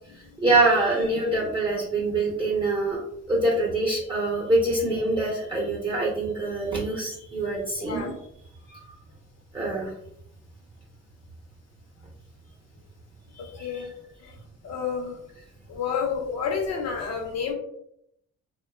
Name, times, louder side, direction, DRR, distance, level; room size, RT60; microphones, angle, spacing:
voice 1, 0.4-3.0 3.3-8.1 8.7-8.8 9.5-9.9 13.4-13.9, right 2 dB, 15° right, -5 dB, 0.8 m, -25 dB
voice 2, 4.7-5.1 7.8-8.1 13.4-13.9 14.2-14.3 14.6-15.2 15.7-17.5, left 6 dB, 55° left, 1 dB, 0.8 m, -30 dB
2.8 x 2.2 x 2.2 m, 0.75 s
cardioid pair, 90°, 30 cm